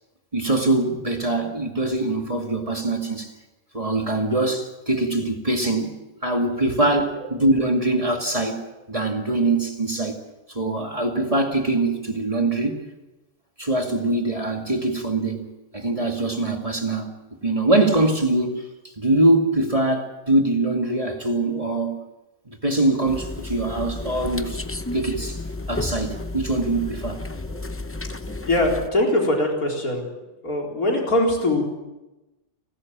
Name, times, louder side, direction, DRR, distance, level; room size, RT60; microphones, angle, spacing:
voice 1, 0.3-3.3 3.7-5.9 6.2-8.6 8.9-10.2 10.5-12.9 13.6-17.1 17.4-22.0 22.5-24.6 24.9-25.4 25.7-27.2, right 2 dB, 25° right, 2.3 m, -23 dB
sound 1, 23.0-28.9, left 2 dB, 15° left, 0.5 m, -32 dB
voice 2, 28.3-30.1 30.4-31.6, left 1 dB, 85° left, 4.7 m, -22 dB
30.0 x 13.0 x 7.6 m
omnidirectional pair, 1.5 m